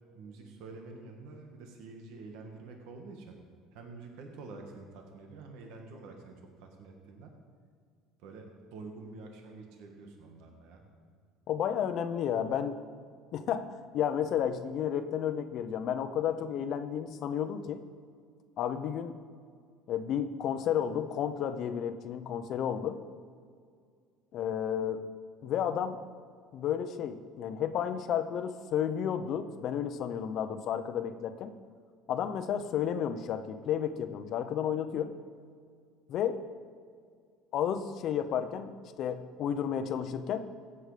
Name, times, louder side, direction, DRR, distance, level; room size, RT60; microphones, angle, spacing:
voice 1, 0.1-3.3 3.7-7.3 8.2-10.8, right 3 dB, 75° right, 3 dB, 1.7 m, -47 dB
voice 2, 11.5-12.8 13.3-17.8 18.6-19.2 19.9-23.0 24.3-25.0 25.4-26.0 26.5-31.5 32.1-35.1 36.1-36.4 37.5-40.5, left 9 dB, 55° left, 10 dB, 0.8 m, -32 dB
16.0 x 7.9 x 5.0 m, 2.1 s
cardioid pair, 120°, 0 cm